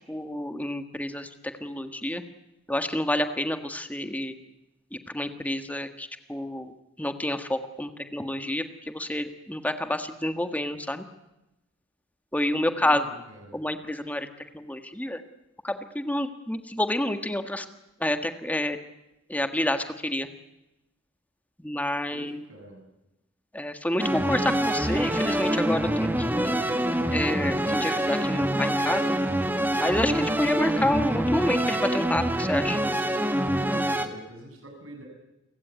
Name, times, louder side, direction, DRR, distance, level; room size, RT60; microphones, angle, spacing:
voice 1, 0.1-1.3 1.6-2.2 2.7-4.3 4.9-11.0 12.3-13.0 13.5-14.3 14.5-15.2 15.6-17.6 18.0-18.8 19.3-20.3 21.6-22.4 23.5-26.5 27.1-29.2 29.8-32.8, left 1 dB, 10° left, 8 dB, 1.6 m, -29 dB
voice 2, 12.8-13.6 22.1-22.9 33.6-35.1, right 1 dB, 80° right, 4 dB, 7.3 m, -45 dB
sound 1, 24.0-34.1, right 1 dB, 10° right, 1.6 m, -25 dB
29.5 x 16.0 x 9.4 m, 0.94 s
head